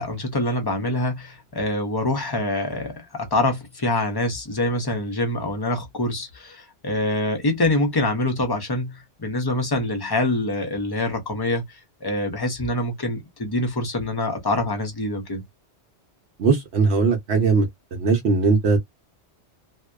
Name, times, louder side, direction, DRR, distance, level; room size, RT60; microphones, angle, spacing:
voice 1, 0.0-15.4, left 2 dB, 30° left, 0.5 m, -25 dB
voice 2, 16.4-18.8, right 4 dB, 65° right, 0.9 m, -20 dB
2.6 x 2.1 x 2.2 m
omnidirectional pair, 1.2 m